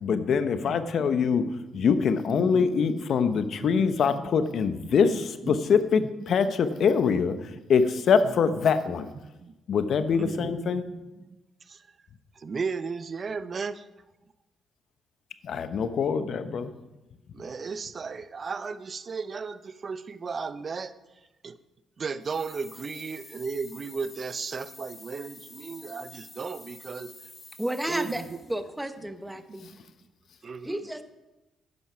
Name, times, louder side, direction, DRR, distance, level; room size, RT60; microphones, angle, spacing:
voice 1, 0.0-1.4 1.7-9.1 9.7-10.8 15.4-16.7, left 6 dB, 60° left, 10 dB, 0.8 m, -24 dB
voice 2, 0.5-1.9 2.3-2.9 3.2-5.6 6.4-6.5 6.8-7.7 8.2-8.3 9.4-9.5 10.1-11.4 11.7-11.9 12.4-13.9 16.2-16.8 17.3-20.9 21.4-21.6 22.0-27.1 27.9-28.4 29.5-29.8 30.4-30.8, right 5 dB, 40° right, 13 dB, 0.7 m, -36 dB
sound 1, 22.2-28.6, left 3 dB, 25° left, 2.3 m, -49 dB
voice 3, 27.6-28.2 28.5-29.6 30.6-31.0, right 1 dB, 5° right, 9 dB, 0.9 m, -32 dB
11.0 x 9.2 x 5.7 m, 1.0 s
cardioid pair, 90°, 0 cm